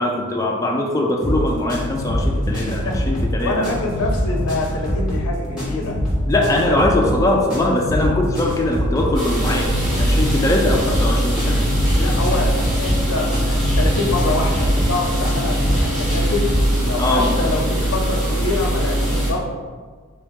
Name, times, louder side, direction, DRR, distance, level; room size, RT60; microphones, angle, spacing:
voice 1, 0.0-3.7 6.3-9.7 10.0-11.6 17.0-17.4, left 1 dB, 15° left, -1 dB, 0.3 m, -21 dB
sound 1, 1.2-16.7, equal, 5° right, 1.3 m, -24 dB
voice 2, 2.7-3.0 3.4-6.0 6.6-6.9 12.0-16.5 16.8-19.5, left 2 dB, 70° left, 1 dB, 0.5 m, -25 dB
sound 2, 9.1-19.3, right 1 dB, 35° right, 1.3 m, -21 dB
3.8 x 2.7 x 3.5 m, 1.5 s
head